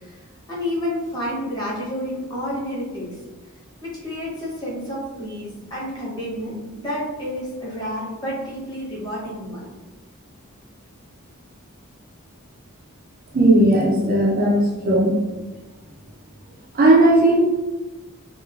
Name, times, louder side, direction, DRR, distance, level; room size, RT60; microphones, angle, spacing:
voice 1, 0.0-3.2 3.8-9.7, equal, 20° left, -7 dB, 0.9 m, -30 dB
voice 2, 13.3-14.6 14.9-15.1 16.7-17.4, right 1 dB, 45° right, -1 dB, 0.4 m, -16 dB
3.0 x 2.3 x 2.3 m, 1.1 s
head